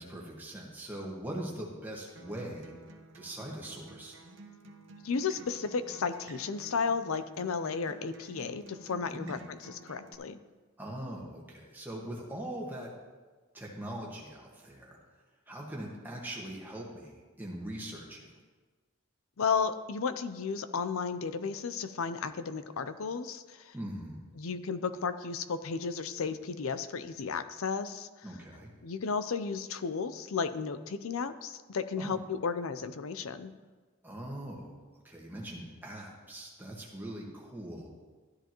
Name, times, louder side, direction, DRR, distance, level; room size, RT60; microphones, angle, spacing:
voice 1, 0.0-2.7 3.1-4.2 9.1-9.4 10.8-12.9 13.5-15.0 15.5-18.3 23.7-24.2 28.2-28.7 32.0-32.2 34.0-34.7 35.0-37.9, right 1 dB, 10° right, -3 dB, 1.5 m, -41 dB
Acoustic guitar, 2.2-10.1, right 2 dB, 65° right, 1.0 m, -52 dB
voice 2, 5.0-10.4 19.4-23.7 24.4-28.1 28.8-33.5, left 5 dB, 85° left, 12 dB, 0.5 m, -33 dB
12.5 x 10.5 x 3.0 m, 1.4 s
head